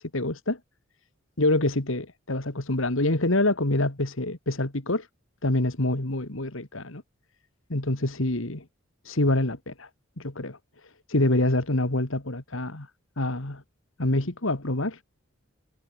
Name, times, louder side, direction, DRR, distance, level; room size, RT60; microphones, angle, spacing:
voice 1, 0.1-0.6 1.4-5.1 5.4-7.0 7.7-8.6 9.1-9.9 10.2-10.6 11.1-12.9 13.2-13.6 14.0-15.0, left 2 dB, 65° left, 2.4 m, -26 dB
head